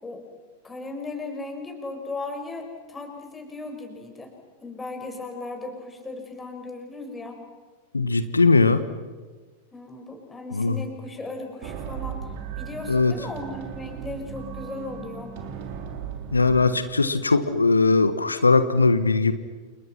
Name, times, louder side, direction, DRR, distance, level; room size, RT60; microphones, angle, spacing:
voice 1, 0.6-4.3 4.6-7.4 9.7-15.3, left 2 dB, 10° left, 3 dB, 6.4 m, -36 dB
voice 2, 7.9-8.8 10.6-10.8 12.9-13.1 16.3-19.3, left 3 dB, 80° left, 12 dB, 1.5 m, -19 dB
sound 1, 11.6-16.8, right 7 dB, 50° right, 3.7 m, -36 dB
29.5 x 29.5 x 6.1 m, 1.3 s
figure-of-eight pair, 90°, 0 cm